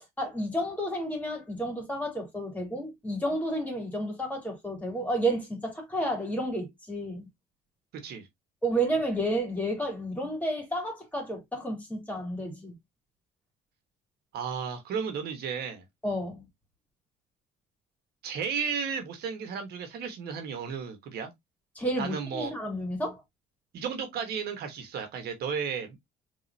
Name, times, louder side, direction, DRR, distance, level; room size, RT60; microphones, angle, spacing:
voice 1, 0.2-7.3 8.6-12.7 16.0-16.4 21.7-23.2, right 1 dB, 10° left, 3.0 m, -31 dB
voice 2, 7.9-8.3 14.3-15.8 18.2-21.3 22.0-22.5 23.7-26.0, right 6 dB, 70° right, 1.4 m, -34 dB
4.9 x 3.6 x 2.8 m
cardioid pair, 110°, 17 cm